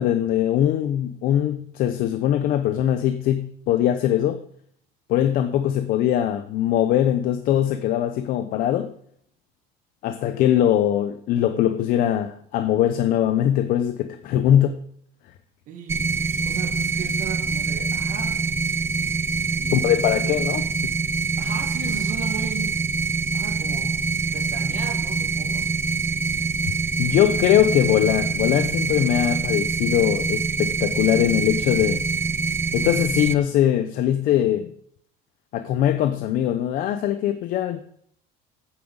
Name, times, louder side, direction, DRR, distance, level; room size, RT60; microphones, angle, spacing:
voice 1, 0.0-4.4 5.1-8.9 10.0-14.8 19.7-20.7 27.0-32.0 32.7-34.7 35.5-37.8, left 11 dB, 55° left, 0.8 m, -21 dB
voice 2, 15.7-18.4 19.5-20.7 21.4-22.8 23.3-25.6, right 6 dB, 50° right, 1.9 m, -36 dB
sound 1, 15.9-33.3, right 5 dB, 15° right, 0.5 m, -25 dB
9.3 x 7.2 x 8.0 m
cardioid pair, 160°, 17 cm